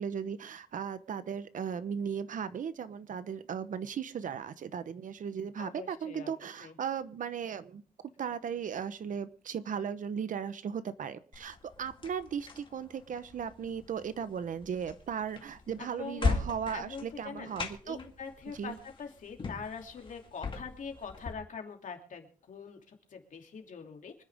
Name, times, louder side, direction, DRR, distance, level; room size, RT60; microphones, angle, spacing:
voice 1, 0.0-7.8 8.2-18.0 18.6-18.8, right 7 dB, 70° right, 13 dB, 1.0 m, -37 dB
voice 2, 5.6-6.3 6.6-6.7 15.8-16.5 16.7-17.6 17.8-24.2, left 6 dB, 65° left, 3 dB, 2.9 m, -44 dB
sound 1, 11.3-21.3, left 4 dB, 35° left, 2.1 m, -39 dB
25.5 x 10.0 x 3.6 m, 0.39 s
wide cardioid pair, 155°, 14 cm